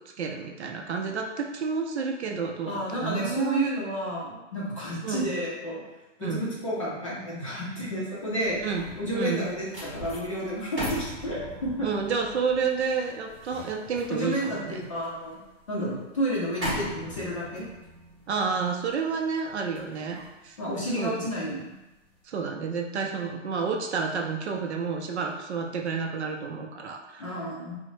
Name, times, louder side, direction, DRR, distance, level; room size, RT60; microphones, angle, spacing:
voice 1, 0.2-3.6 5.0-5.3 6.2-6.4 8.6-8.8 9.1-9.5 11.8-14.8 18.3-20.2 20.4-20.6 21.0-21.1 22.3-27.2, right 5 dB, 60° right, 2 dB, 0.5 m, -30 dB
voice 2, 2.7-5.8 6.2-8.6 9.0-11.9 14.1-15.4 15.7-17.6 20.6-21.7 27.2-27.8, equal, 25° left, -6 dB, 0.5 m, -31 dB
sound 1, 8.2-21.5 21.9-22.2, equal, ahead, 0.8 m, -40 dB
3.5 x 2.1 x 3.1 m, 1.0 s
hypercardioid pair, 170°, 38 cm